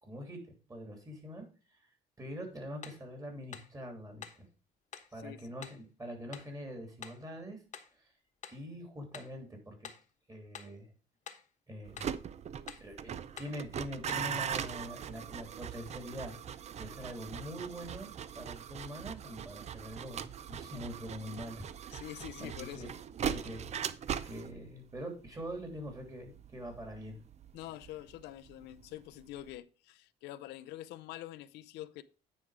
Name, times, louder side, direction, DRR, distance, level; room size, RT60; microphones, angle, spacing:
voice 1, 0.0-1.5 2.2-4.5 5.1-7.6 8.5-9.9 10.3-10.9 11.7-12.1 12.8-16.3 16.8-22.0 22.4-22.9 23.2-23.7 24.2-27.2, equal, 20° right, 3.0 m, -44 dB
sound 1, 2.8-3.1 3.5-3.8 4.2-4.5 4.9-5.1 5.6-5.8 6.3-6.5 7.0-7.3 7.7-8.0 8.4-8.7 9.1-9.4 9.8-10.1 10.5-10.8 11.3-11.5 12.0-12.2 12.7-12.9 13.4-13.6 14.1-14.3, left 7 dB, 45° left, 1.1 m, -48 dB
voice 2, 5.1-5.6 21.4-21.5 21.9-22.9 23.2-23.5 27.5-32.0, left 14 dB, 85° left, 0.5 m, -46 dB
sound 2, 11.9-28.9 29.1-29.6, right 8 dB, 40° right, 0.5 m, -41 dB
9.5 x 4.7 x 4.8 m
cardioid pair, 110°, 17 cm